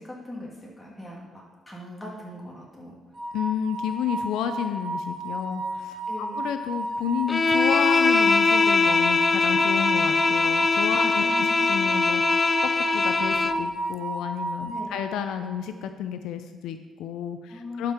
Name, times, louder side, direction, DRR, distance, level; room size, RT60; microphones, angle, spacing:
voice 1, 0.0-3.0 6.1-6.4 11.0-11.6 14.7-15.0 17.5-17.9, left 1 dB, 15° left, -3 dB, 2.8 m, -40 dB
sound 1, 3.2-15.4, right 2 dB, 45° right, 2.0 m, -32 dB
voice 2, 3.3-17.9, left 9 dB, 90° left, 8 dB, 0.5 m, -31 dB
Bowed string instrument, 7.3-13.7, left 4 dB, 30° left, 0.4 m, -22 dB
11.5 x 5.2 x 4.3 m, 1.4 s
cardioid pair, 90°, 0 cm